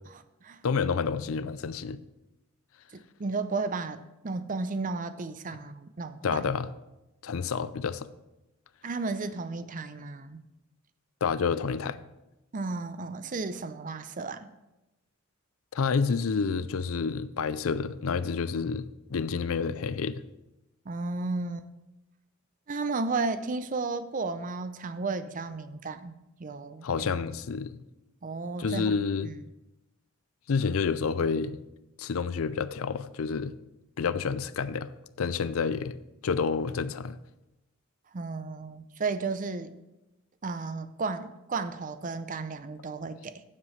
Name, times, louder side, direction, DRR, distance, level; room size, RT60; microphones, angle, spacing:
voice 1, 0.6-2.0 6.2-6.7 7.2-8.1 11.2-12.0 15.7-18.8 19.1-20.2 26.8-27.8 28.6-29.3 30.5-31.6 32.0-33.5 34.0-34.9 35.2-36.0 36.2-37.2, left 5 dB, 80° left, 0.5 m, -29 dB
voice 2, 2.9-6.5 8.8-10.4 12.5-14.5 20.9-21.7 22.7-27.1 28.2-28.9 29.2-29.4 38.1-39.7 40.4-43.4, right 3 dB, 40° right, 0.5 m, -33 dB
15.0 x 7.5 x 3.2 m
head